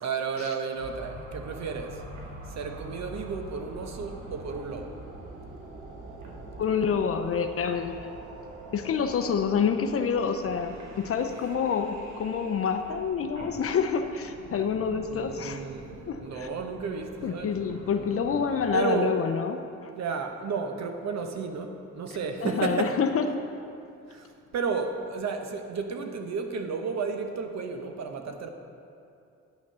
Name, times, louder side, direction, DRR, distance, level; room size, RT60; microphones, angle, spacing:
voice 1, 0.0-1.9 2.6-4.9 15.1-15.9 16.2-17.5 18.7-19.2 19.9-22.9 24.1-24.2 24.5-28.5, right 5 dB, 60° right, 5 dB, 1.0 m, -32 dB
sound 1, 0.8-18.7, right 2 dB, 85° right, 1.4 m, -44 dB
voice 2, 6.6-8.0 8.7-15.6 16.1-16.5 17.2-19.9 22.4-23.3, left 6 dB, 50° left, 7 dB, 0.6 m, -27 dB
9.9 x 6.3 x 5.5 m, 2.5 s
cardioid pair, 90°, 30 cm